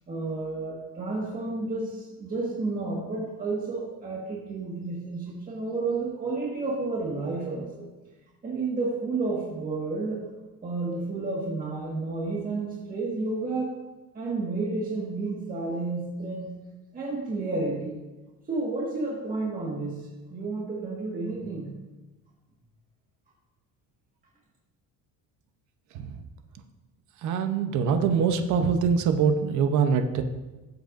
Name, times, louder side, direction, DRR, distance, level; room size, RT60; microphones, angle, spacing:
voice 1, 0.1-7.9 8.4-10.2 10.6-13.8 14.1-16.5 16.9-18.0 18.5-21.8, right 3 dB, 20° right, -4 dB, 1.7 m, -31 dB
voice 2, 27.2-30.2, right 6 dB, 50° right, 7 dB, 0.8 m, -24 dB
15.5 x 7.9 x 2.6 m, 1.1 s
cardioid pair, 155°, 37 cm